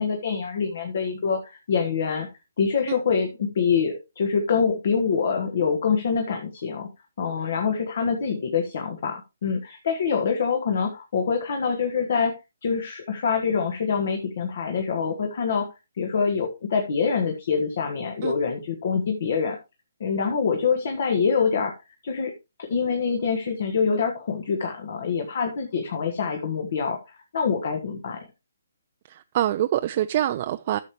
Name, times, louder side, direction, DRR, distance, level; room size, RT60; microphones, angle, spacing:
voice 1, 0.0-2.3 2.6-6.9 7.2-12.3 12.6-15.7 16.0-19.6 20.0-21.7 22.0-22.3 22.6-28.2, left 5 dB, 50° left, 1.5 m, -25 dB
voice 2, 29.1-30.8, right 12 dB, 40° right, 0.4 m, -25 dB
13.0 x 7.1 x 3.0 m
figure-of-eight pair, 135°, 0 cm